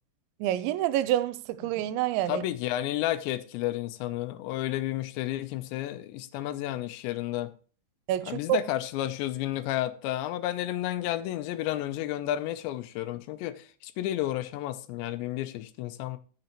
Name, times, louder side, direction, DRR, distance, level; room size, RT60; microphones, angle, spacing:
voice 1, 0.4-2.4 8.1-8.6, right 12 dB, 85° right, 2.9 m, -27 dB
voice 2, 2.3-7.5 8.3-16.2, left 14 dB, 80° left, 2.8 m, -31 dB
15.0 x 6.7 x 3.0 m
omnidirectional pair, 5.3 m